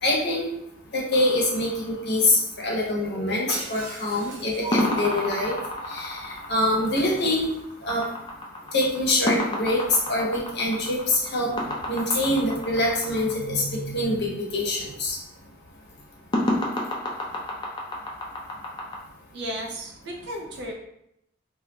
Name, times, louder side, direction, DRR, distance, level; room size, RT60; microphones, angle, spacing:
voice 1, 0.0-0.4 0.9-5.6 5.9-7.4 7.8-8.0 8.7-9.8 10.1-11.0 11.3-11.5 11.9-15.2, left 1 dB, 55° left, -3 dB, 0.8 m, -25 dB
sound 1, 1.1-2.5 4.7-13.3 16.3-19.0, left 1 dB, 25° left, 0.4 m, -30 dB
Shatter, 3.5-5.1 6.9-8.0 9.7-10.0, right 2 dB, 85° right, 0.9 m, -40 dB
voice 2, 19.3-20.7, equal, 60° right, 1 dB, 0.5 m, -34 dB
2.3 x 2.1 x 2.9 m, 0.78 s
head